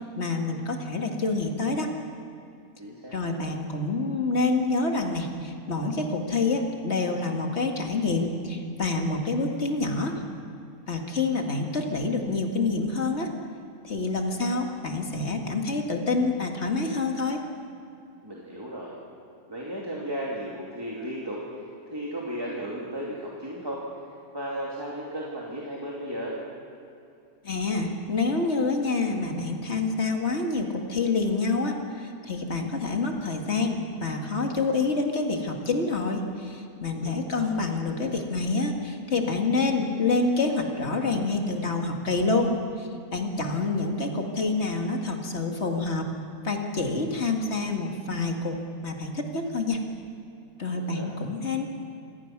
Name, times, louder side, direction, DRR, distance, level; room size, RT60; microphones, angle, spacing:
voice 1, 0.0-1.9 3.1-10.2 10.9-13.3 13.8-17.4 27.4-46.0 46.4-48.6 48.8-49.8 50.6-51.6, left 3 dB, 45° left, 2 dB, 2.2 m, -27 dB
voice 2, 2.8-3.3 18.2-18.9 19.5-21.4 21.9-23.8 24.3-26.4 37.0-37.5 50.7-51.1, equal, 15° right, -4 dB, 2.6 m, -35 dB
26.5 x 17.5 x 6.0 m, 2.5 s
omnidirectional pair, 1.6 m